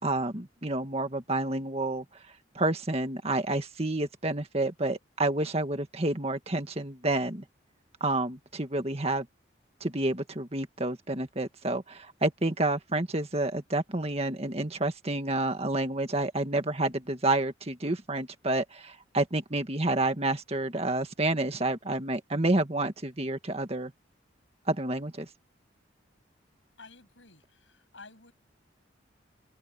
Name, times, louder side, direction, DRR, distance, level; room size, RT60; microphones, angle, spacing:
voice 1, 0.0-2.0 2.6-7.4 8.0-9.3 9.8-23.9 24.7-25.3, right 2 dB, 30° right, 1.8 m, -29 dB
voice 2, 26.8-28.3, left 3 dB, 80° left, 7.6 m, -52 dB
open air
head